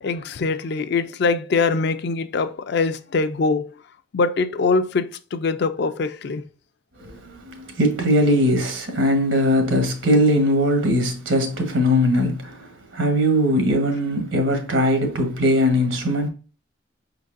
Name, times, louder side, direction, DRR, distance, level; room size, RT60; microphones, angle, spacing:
voice 1, 0.0-3.7 4.1-6.4, left 4 dB, 60° left, 0.4 m, -23 dB
voice 2, 7.0-12.7 12.9-16.3, equal, 85° right, 1.2 m, -20 dB
5.1 x 4.0 x 2.5 m
head